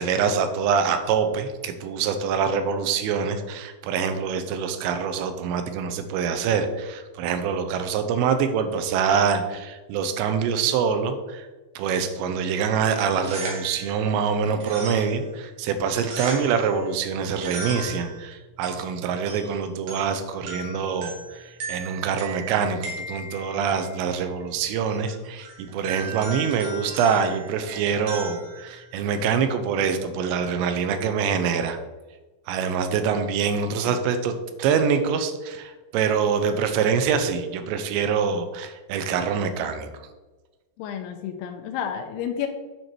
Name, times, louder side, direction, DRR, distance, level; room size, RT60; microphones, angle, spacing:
voice 1, 0.0-11.5 11.8-31.8 32.5-39.9, right 6 dB, 85° right, 8 dB, 2.9 m, -25 dB
sound 1, 13.0-29.3, right 3 dB, 60° right, 2.7 m, -38 dB
voice 2, 40.8-42.5, left 9 dB, 80° left, 5 dB, 2.3 m, -31 dB
9.3 x 4.6 x 4.4 m, 1.2 s
omnidirectional pair, 5.1 m